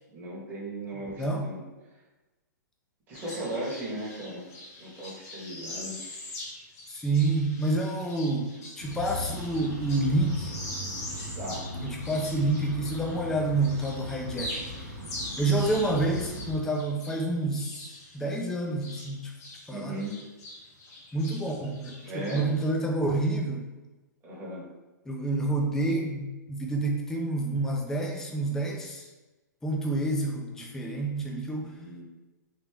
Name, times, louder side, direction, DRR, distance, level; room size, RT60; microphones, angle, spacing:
voice 1, 0.1-1.6 3.1-4.5 4.8-6.0 11.3-11.7 19.7-20.1 22.0-22.5 24.2-24.7 31.6-32.0, right 1 dB, 20° right, -6 dB, 1.0 m, -37 dB
sound 1, 3.1-13.3 13.6-19.7 19.9-22.7, left 1 dB, 50° left, 1.1 m, -43 dB
voice 2, 6.9-10.5 11.8-14.6 15.4-19.3 19.7-19.9 21.1-23.7 25.1-29.1 29.6-31.7, right 2 dB, 5° left, 0 dB, 0.3 m, -28 dB
sound 2, 8.8-16.5, equal, 40° right, 0.8 m, -39 dB
3.3 x 2.4 x 3.3 m, 1.1 s
hypercardioid pair, 140°, 10 cm